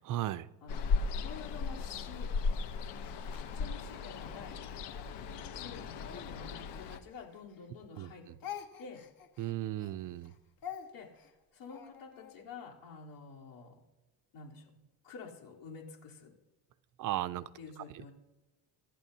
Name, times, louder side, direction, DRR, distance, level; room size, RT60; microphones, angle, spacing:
voice 1, 0.0-0.5 7.9-8.4 9.4-10.3 17.0-17.5 17.8-18.0, right 13 dB, 50° right, 16 dB, 0.4 m, -36 dB
Ocean, 0.7-7.0, left 4 dB, 70° left, 1.0 m, -36 dB
voice 2, 1.1-2.6 3.1-4.6 5.5-8.3 8.8-9.0 10.9-13.8 14.3-14.7 15.0-16.3 17.6-18.1, left 5 dB, 85° left, -3 dB, 3.8 m, -49 dB
Speech, 1.2-4.3 4.9-7.7 7.9-12.4, left 9 dB, 55° left, 1.5 m, -49 dB
25.0 x 11.5 x 2.8 m, 1.1 s
cardioid pair, 175°, 42 cm